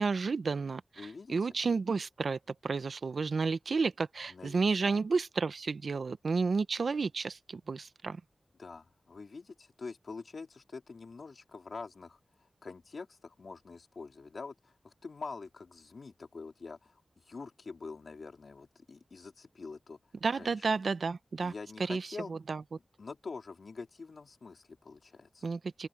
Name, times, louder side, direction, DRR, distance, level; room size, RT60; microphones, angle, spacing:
voice 1, 0.0-8.2 20.2-21.5 21.8-22.6 25.4-25.9, right 4 dB, 75° right, 0.8 m, -31 dB
voice 2, 1.0-1.4 4.3-5.0 8.6-12.2 12.6-17.0 17.3-20.0 20.3-20.5 21.4-22.3 23.0-25.4, left 4 dB, 70° left, 3.8 m, -45 dB
open air
wide cardioid pair, 65°, 0 cm